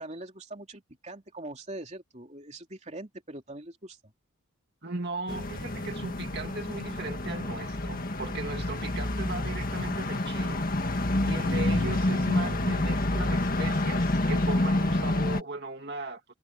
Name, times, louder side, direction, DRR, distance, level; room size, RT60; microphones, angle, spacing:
voice 1, 0.0-4.0, right 1 dB, 30° right, 3.0 m, -42 dB
voice 2, 4.8-10.6 11.0-16.3, right 2 dB, 50° right, 2.7 m, -37 dB
sound 1, 5.3-15.4, left 1 dB, 40° left, 1.8 m, -28 dB
head